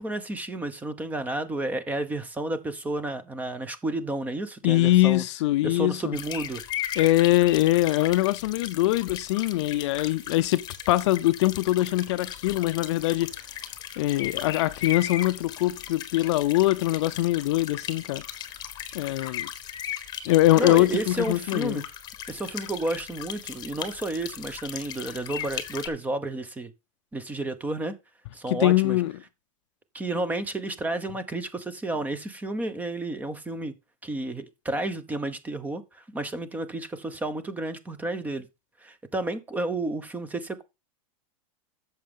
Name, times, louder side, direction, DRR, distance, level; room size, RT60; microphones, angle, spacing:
voice 1, 0.0-5.2 5.6-6.6 20.5-21.8 22.3-26.7 27.1-27.9 28.3-29.0 29.9-33.7 34.0-38.5 38.8-40.6, right 2 dB, 10° right, 0.9 m, -31 dB
voice 2, 4.6-6.2 7.0-13.3 14.0-18.2 18.9-19.5 20.3-21.8 28.5-29.1, left 16 dB, 60° left, 0.6 m, -23 dB
sound 1, 6.1-25.9, left 10 dB, 25° left, 1.2 m, -37 dB
10.5 x 7.2 x 3.7 m
supercardioid pair, 150°, 17 cm